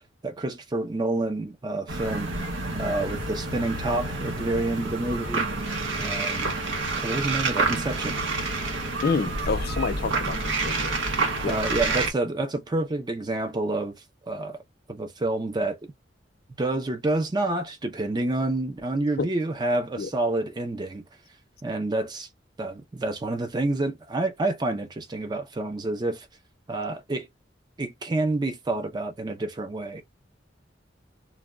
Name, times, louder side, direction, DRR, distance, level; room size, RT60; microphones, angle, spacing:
voice 1, 0.2-2.3 2.7-5.5 6.0-6.5 7.0-8.2 11.5-13.9 14.3-14.6 14.9-15.8 16.6-21.0 21.6-22.3 22.6-26.3 26.7-27.3 27.8-30.0, right 2 dB, 25° right, 0.5 m, -28 dB
sound 1, 1.9-12.1, right 3 dB, 85° right, 0.7 m, -28 dB
voice 2, 9.0-10.4 10.6-11.0 11.4-11.6 19.2-19.3 20.0-20.1, left 4 dB, 55° left, 0.5 m, -28 dB
2.2 x 2.0 x 3.5 m
head